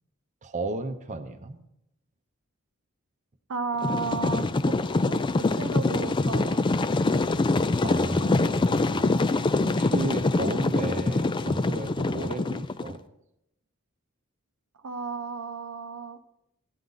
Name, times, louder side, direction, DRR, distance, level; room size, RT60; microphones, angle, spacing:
voice 1, 0.4-1.6 7.8-13.0, right 2 dB, 35° right, 7 dB, 0.7 m, -34 dB
voice 2, 3.5-4.8 5.0-6.6 14.8-16.2, right 4 dB, 70° right, 7 dB, 0.7 m, -33 dB
sound 1, 3.8-12.9, left 3 dB, 20° left, 0.3 m, -24 dB
14.0 x 9.5 x 3.9 m, 0.82 s
head